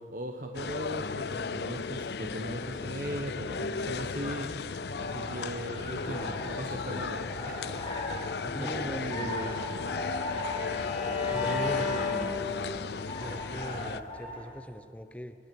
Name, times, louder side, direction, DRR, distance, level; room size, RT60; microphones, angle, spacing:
voice 1, 0.0-7.9 8.4-9.6 10.4-11.1 11.4-12.3, right 1 dB, 50° right, 3 dB, 1.1 m, -39 dB
sound 1, 0.5-14.0, left 5 dB, 70° left, 0.5 m, -36 dB
sound 2, 4.7-14.5, left 1 dB, 25° left, 7.0 m, -39 dB
voice 2, 8.5-9.5 11.3-11.9 13.1-15.3, equal, 5° left, 8 dB, 0.8 m, -41 dB
Bowed string instrument, 8.8-13.0, left 6 dB, 55° left, 6.5 m, -35 dB
20.5 x 17.0 x 7.8 m, 2.8 s
head